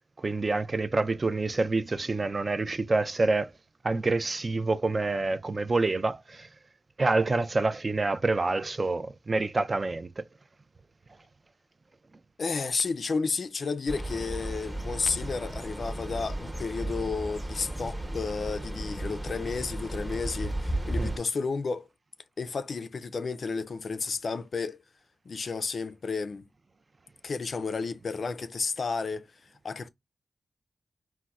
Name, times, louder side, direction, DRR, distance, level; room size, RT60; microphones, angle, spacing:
voice 1, 0.2-3.5 3.8-6.5 7.0-10.2 21.0-21.1, right 3 dB, 40° right, 0.3 m, -27 dB
voice 2, 12.4-21.9 22.4-24.8 25.3-26.4 27.2-29.3 29.6-29.9, left 4 dB, 65° left, 0.3 m, -32 dB
sound 1, 13.9-21.2, right 1 dB, 15° right, 0.9 m, -34 dB
4.1 x 2.1 x 2.3 m
cardioid pair, 65°, 0 cm